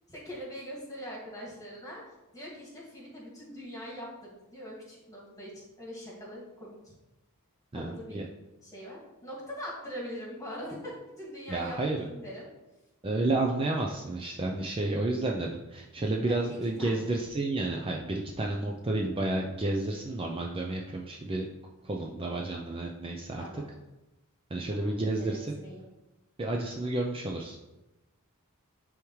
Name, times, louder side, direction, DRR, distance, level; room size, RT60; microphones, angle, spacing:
voice 1, 0.1-2.0 2.3-6.8 7.7-8.2 8.6-12.5 16.3-17.2 23.4-23.7 24.7-25.8, equal, 15° left, -4 dB, 2.0 m, -42 dB
voice 2, 7.7-8.2 11.5-12.0 13.0-21.5 21.8-23.4 24.5-25.5 26.4-27.6, right 2 dB, 25° right, 0 dB, 0.5 m, -31 dB
9.9 x 3.6 x 3.1 m, 1.0 s
head